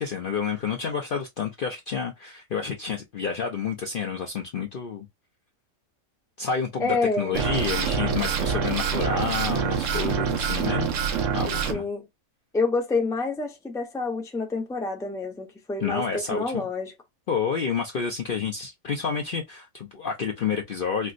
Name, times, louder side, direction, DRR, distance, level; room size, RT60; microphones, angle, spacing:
voice 1, 0.0-5.1 6.4-10.9 11.3-11.9 15.8-16.6 17.3-21.1, left 6 dB, 55° left, 0.6 m, -29 dB
voice 2, 6.8-7.5 11.7-12.1 12.5-16.9, left 3 dB, 5° left, 0.5 m, -28 dB
sound 1, 7.3-11.7, right 6 dB, 75° right, 1.0 m, -26 dB
4.4 x 2.0 x 2.5 m
omnidirectional pair, 1.4 m